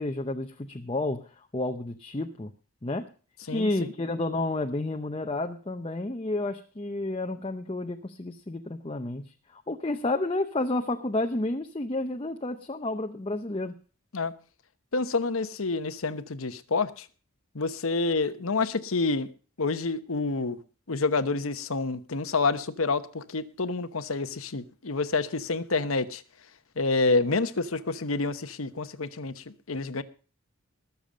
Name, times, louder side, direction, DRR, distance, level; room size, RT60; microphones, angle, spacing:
voice 1, 0.0-2.5 2.8-3.1 3.5-13.7, left 2 dB, 25° left, 0.7 m, -31 dB
voice 2, 3.5-3.9 14.1-14.3 14.9-17.1 17.5-19.3 19.6-20.6 20.9-26.2 26.8-30.0, left 3 dB, 80° left, 1.0 m, -28 dB
20.0 x 7.1 x 5.1 m
head